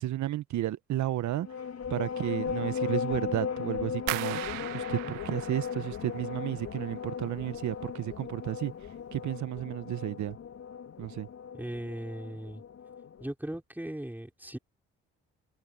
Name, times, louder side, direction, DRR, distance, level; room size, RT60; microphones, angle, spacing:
voice 1, 0.0-1.5 1.9-8.7 9.1-10.4 11.0-11.3, right 13 dB, 65° right, 1.4 m, -32 dB
sound 1, 1.4-13.3, left 7 dB, 55° left, 2.5 m, -37 dB
sound 2, 4.1-6.9 7.2-7.9 8.3-8.7 9.1-9.3, right 19 dB, 80° right, 1.9 m, -39 dB
voice 2, 11.5-12.6 13.2-14.6, right 1 dB, 5° right, 5.8 m, -38 dB
hypercardioid pair, 50°, 31 cm